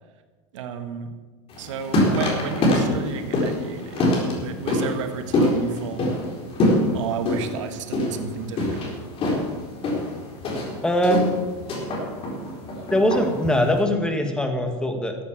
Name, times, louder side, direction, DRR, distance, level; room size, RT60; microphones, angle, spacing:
voice 1, 0.5-1.1 1.6-6.1 6.9-8.9, right 6 dB, 90° right, 7 dB, 1.7 m, -32 dB
sound 1, 1.5-13.8, left 1 dB, 40° left, 4.2 m, -25 dB
voice 2, 10.8-11.3 12.9-15.2, equal, 5° left, 4 dB, 1.9 m, -21 dB
14.0 x 8.1 x 7.5 m, 1.3 s
supercardioid pair, 130°, 15 cm